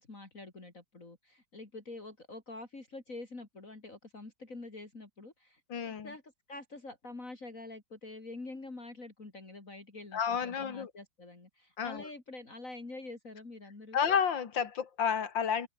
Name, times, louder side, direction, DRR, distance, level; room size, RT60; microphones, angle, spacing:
voice 1, 0.0-14.0, left 2 dB, 40° left, 4.0 m, -46 dB
voice 2, 5.7-6.1 10.1-10.9 11.8-12.1 13.9-15.7, left 7 dB, 70° left, 2.6 m, -31 dB
omnidirectional pair, 2.1 m